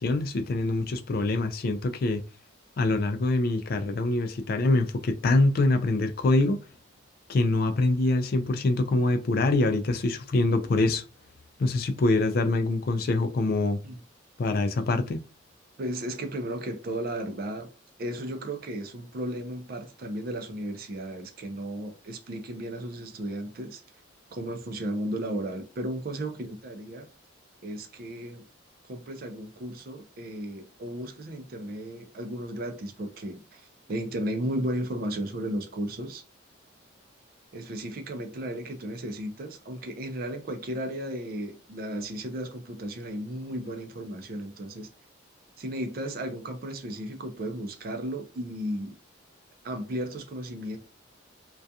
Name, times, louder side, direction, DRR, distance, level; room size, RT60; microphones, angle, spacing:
voice 1, 0.0-2.2 2.8-6.6 7.3-11.0 11.6-13.8 14.4-15.2, left 2 dB, 50° left, 0.3 m, -24 dB
voice 2, 15.8-17.7 18.0-23.8 24.3-27.1 27.6-28.4 28.9-33.6 33.9-36.2 37.5-44.9 45.6-49.0 49.6-50.8, right 1 dB, 45° right, 0.4 m, -34 dB
2.3 x 2.2 x 2.7 m
head